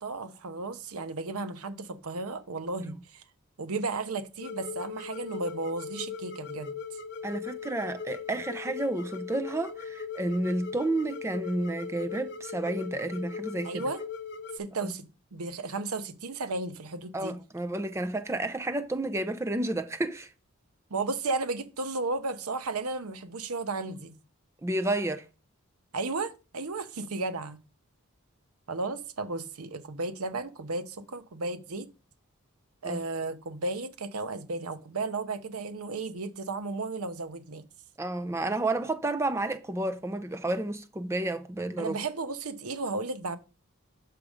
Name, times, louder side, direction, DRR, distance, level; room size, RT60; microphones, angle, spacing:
voice 1, 0.0-3.2 3.6-6.7 13.6-14.0 14.5-17.4 20.9-24.1 25.9-27.6 28.7-31.9 32.8-37.6 41.8-43.4, right 3 dB, 80° right, 0.8 m, -34 dB
sound 1, 4.4-14.6, left 6 dB, 50° left, 0.6 m, -39 dB
voice 2, 7.2-13.8 17.1-20.3 24.6-25.3 32.8-33.0 38.0-42.0, right 2 dB, 10° right, 0.5 m, -31 dB
6.3 x 4.8 x 5.0 m
head